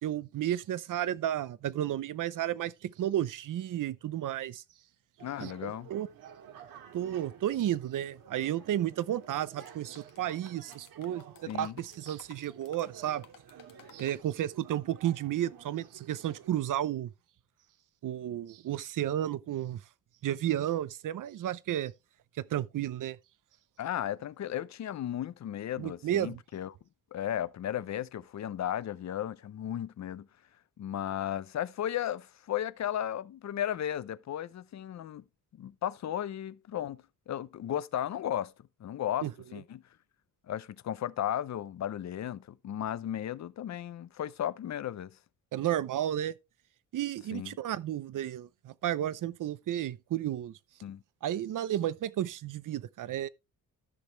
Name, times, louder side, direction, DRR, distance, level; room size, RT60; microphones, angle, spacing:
voice 1, 0.0-4.6 5.4-6.1 6.9-11.2 11.5-13.2 13.9-17.1 18.0-19.8 20.2-21.9 22.4-23.2 25.8-26.4 39.2-39.3 45.5-46.3 46.9-50.5 51.2-53.3, right 12 dB, 60° right, 0.7 m, -32 dB
voice 2, 5.2-5.9 11.5-11.7 23.8-26.7 27.1-30.3 30.8-35.2 35.6-38.5 38.8-39.8 40.5-45.2 47.3-47.5 50.8-51.0, left 11 dB, 50° left, 0.7 m, -35 dB
sound 1, 5.2-16.6, right 8 dB, 80° right, 2.0 m, -53 dB
sound 2, 9.1-9.7 10.0-14.2, left 9 dB, 65° left, 1.4 m, -56 dB
13.5 x 6.4 x 3.3 m
cardioid pair, 130°, 35 cm